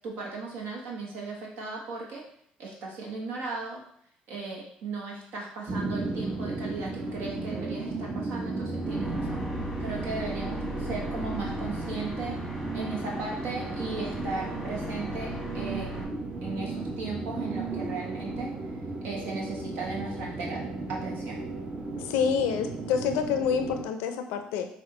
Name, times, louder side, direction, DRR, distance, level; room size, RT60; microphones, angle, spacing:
voice 1, 0.0-2.2 2.6-3.8 4.3-9.4 9.8-16.1 16.4-18.5 19.0-21.4, right 3 dB, 75° right, -2 dB, 1.1 m, -36 dB
sound 1, 5.7-23.8, right 2 dB, 35° right, 0.7 m, -35 dB
sound 2, 8.8-16.0, equal, 10° right, 1.3 m, -38 dB
voice 2, 22.0-24.7, left 7 dB, 85° left, 7 dB, 0.5 m, -27 dB
6.0 x 2.4 x 3.0 m, 0.67 s
supercardioid pair, 80°, 3 cm